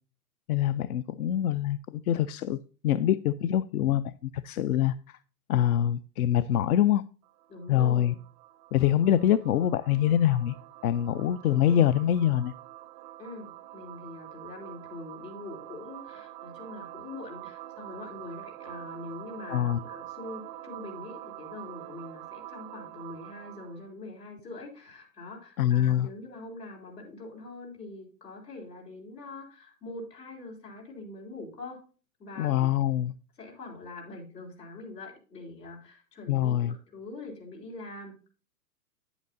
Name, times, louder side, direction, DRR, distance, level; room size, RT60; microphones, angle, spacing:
voice 1, 0.5-5.2 5.5-7.0 7.7-8.1 8.7-10.5 10.8-12.5 19.5-19.8 25.6-26.1 32.4-33.1 36.3-36.7, left 11 dB, 65° left, 15 dB, 0.5 m, -25 dB
sound 1, 7.2-23.9, right 15 dB, 30° right, 0.4 m, -46 dB
voice 2, 7.5-8.2 11.7-11.9 13.2-31.8 32.2-32.7 33.4-38.3, left 2 dB, 85° left, 0 dB, 4.0 m, -43 dB
9.6 x 8.1 x 2.6 m, 0.37 s
hypercardioid pair, 115°, 48 cm